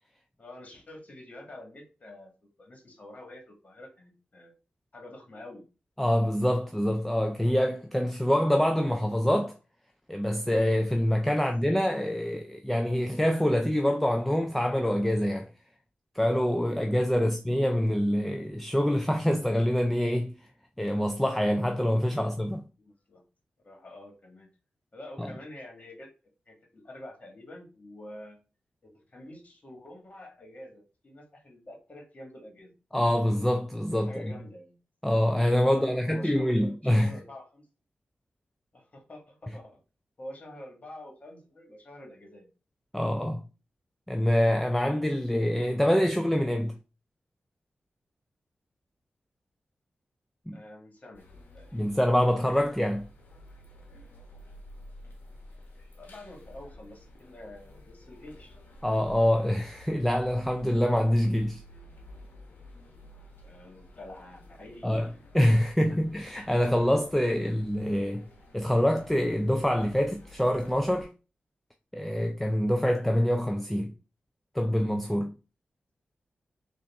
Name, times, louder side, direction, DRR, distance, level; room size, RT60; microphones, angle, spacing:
voice 1, 0.4-4.5 4.9-5.6 22.0-22.3 22.8-23.2 23.6-24.5 24.9-26.1 26.5-28.4 28.8-32.7 34.0-34.8 35.7-37.7 38.7-39.8 40.2-42.5 50.5-51.8 55.9-58.6 63.4-65.0, left 1 dB, 45° left, 1.7 m, -47 dB
voice 2, 6.0-9.5 10.1-15.5 16.1-20.3 20.8-22.6 25.2-25.3 32.9-34.3 35.0-37.1 42.9-43.4 44.1-46.7 50.5-50.6 51.7-53.0 58.8-61.6 64.8-65.1 65.3-68.2 68.5-71.1 71.9-73.9 74.5-75.3, equal, 5° left, 0.4 m, -25 dB
sound 1, 51.1-71.0, left 1 dB, 65° left, 1.2 m, -51 dB
3.7 x 2.5 x 3.5 m
cardioid pair, 55°, 4 cm